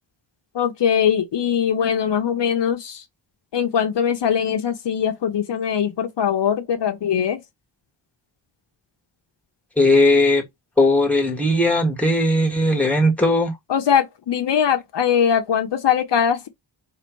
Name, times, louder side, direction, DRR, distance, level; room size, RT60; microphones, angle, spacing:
voice 1, 0.5-3.0 3.5-7.4 13.7-16.5, left 8 dB, 65° left, 1.0 m, -21 dB
voice 2, 9.8-10.4 10.8-13.5, left 1 dB, 5° left, 1.7 m, -18 dB
4.9 x 3.4 x 3.2 m
wide cardioid pair, 150°, 45 cm